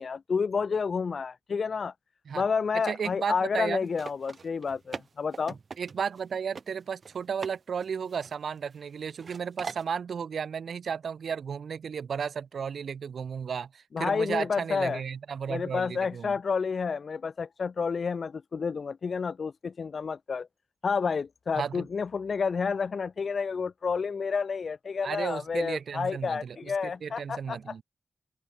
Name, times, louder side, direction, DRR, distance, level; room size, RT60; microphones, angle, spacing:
voice 1, 0.0-1.9 2.3-5.5 13.9-15.0 15.5-20.5 20.8-27.7, left 5 dB, 60° left, 3.1 m, -30 dB
voice 2, 2.8-3.8 5.8-16.3 21.6-21.8 25.0-27.8, right 6 dB, 90° right, 6.1 m, -34 dB
sound 1, 3.9-6.2 6.6-6.7 7.0-7.6 7.8-8.9 9.2-9.9, right 5 dB, 55° right, 3.4 m, -41 dB
open air
wide cardioid pair, 140°, 0 cm